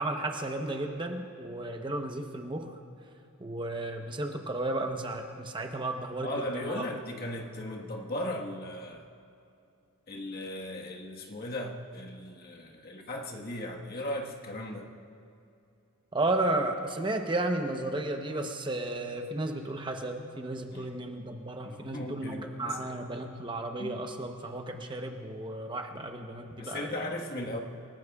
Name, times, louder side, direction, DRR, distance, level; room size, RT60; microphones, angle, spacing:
voice 1, 0.0-2.7 3.4-6.9 16.1-27.0, right 2 dB, 20° right, 4 dB, 0.9 m, -33 dB
voice 2, 6.2-9.1 10.1-14.9 20.7-20.9 21.6-23.3 23.8-24.0 26.6-27.6, left 1 dB, 45° left, 0 dB, 1.5 m, -37 dB
28.5 x 18.0 x 2.4 m, 2.6 s
head